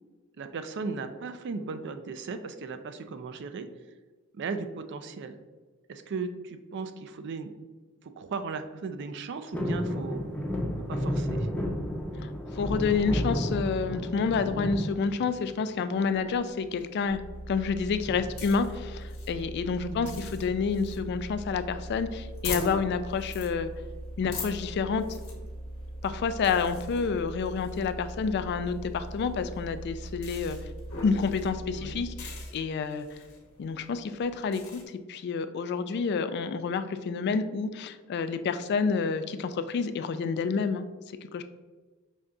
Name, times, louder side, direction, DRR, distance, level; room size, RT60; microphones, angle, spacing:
voice 1, 0.4-3.7 4.3-5.4 5.9-7.5 8.0-10.2 10.9-11.5 19.8-20.2 31.7-32.1, right 4 dB, 55° right, 9 dB, 0.4 m, -37 dB
sound 1, 9.5-15.7 16.1-16.7 18.0-18.4 18.7-18.8 19.1-19.4 20.2-21.1 21.6-21.7, equal, 5° left, 0.6 m, -32 dB
voice 2, 12.2-17.2 17.5-23.7 24.2-25.2 26.0-30.6 31.0-33.1 33.6-40.8 41.2-41.4, left 5 dB, 50° left, 11 dB, 0.3 m, -29 dB
sound 2, 17.0-32.5, right 1 dB, 85° right, 0.8 m, -41 dB
sound 3, 17.9-34.8, left 4 dB, 85° left, 1.0 m, -44 dB
5.3 x 2.3 x 3.6 m, 1.3 s
head